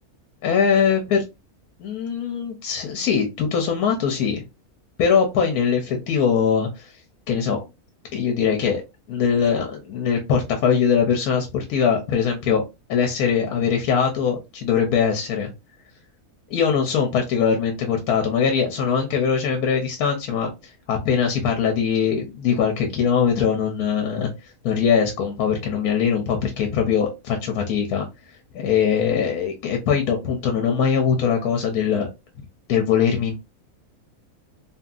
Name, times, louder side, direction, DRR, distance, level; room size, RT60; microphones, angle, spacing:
voice 1, 0.4-1.2 1.8-4.4 5.0-6.9 7.3-7.6 8.1-8.8 9.1-12.6 12.9-15.5 16.5-20.5 20.9-24.3 24.6-28.0 28.5-32.1 32.7-33.3, left 7 dB, 85° left, 3 dB, 1.1 m, -21 dB
2.8 x 2.6 x 2.3 m, 0.24 s
omnidirectional pair, 1.5 m